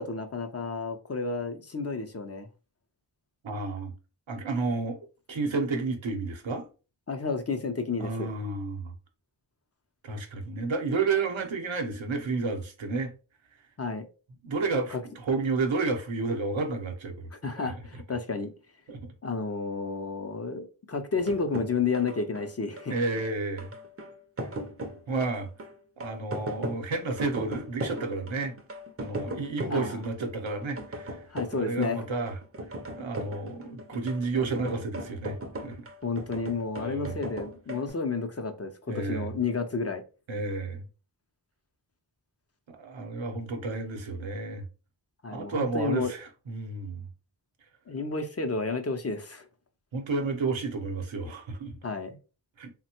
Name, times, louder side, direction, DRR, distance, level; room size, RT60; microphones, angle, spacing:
voice 1, 0.0-2.5 7.1-8.3 13.8-14.1 14.9-15.0 17.3-18.5 19.2-23.0 29.7-30.0 31.3-32.0 36.0-40.0 45.2-46.1 47.9-49.5 51.8-52.2, left 4 dB, 35° left, 0.5 m, -31 dB
voice 2, 3.4-3.9 4.3-5.0 5.3-6.7 8.0-8.9 10.0-13.1 14.4-17.3 17.6-17.7 18.9-19.1 22.9-23.7 24.4-24.5 25.1-25.5 26.0-28.5 29.0-31.2 31.6-32.4 32.9-35.4 35.6-35.9 36.8-37.1 38.9-39.3 40.3-40.9 42.7-44.6 45.3-47.0 49.9-51.8 52.6-52.7, right 3 dB, 85° right, 0.8 m, -31 dB
sound 1, 21.2-37.9, right 1 dB, 30° right, 0.5 m, -38 dB
3.3 x 2.1 x 2.8 m
wide cardioid pair, 50°, 45 cm